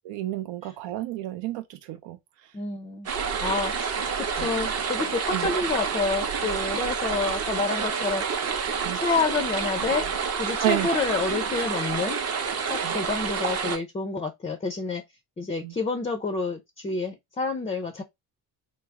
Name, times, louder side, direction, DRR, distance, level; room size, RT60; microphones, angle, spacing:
voice 1, 0.1-2.5 3.4-3.6 4.4-4.5 5.3-5.5 8.8-9.0 10.6-10.9 12.8-13.0 15.6-15.7, right 14 dB, 80° right, 0.5 m, -31 dB
voice 2, 2.5-3.1 3.4-8.2 8.9-10.1 10.4-12.2 12.7-15.0 15.4-18.0, left 4 dB, 15° left, 0.4 m, -28 dB
sound 1, 3.1-13.8, right 6 dB, 35° right, 0.6 m, -28 dB
3.4 x 2.0 x 3.3 m
cardioid pair, 105°, 44 cm